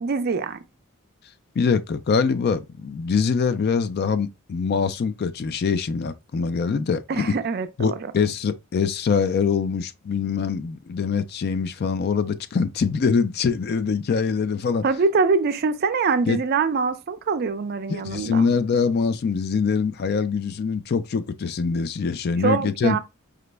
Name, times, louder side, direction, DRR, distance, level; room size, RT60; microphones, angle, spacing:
voice 1, 0.0-0.6 7.1-8.1 14.8-18.5 22.4-23.0, right 4 dB, 45° right, 0.4 m, -24 dB
voice 2, 1.6-7.3 7.8-14.8 16.3-16.4 17.9-23.0, left 5 dB, 50° left, 0.4 m, -24 dB
4.9 x 2.1 x 3.2 m
head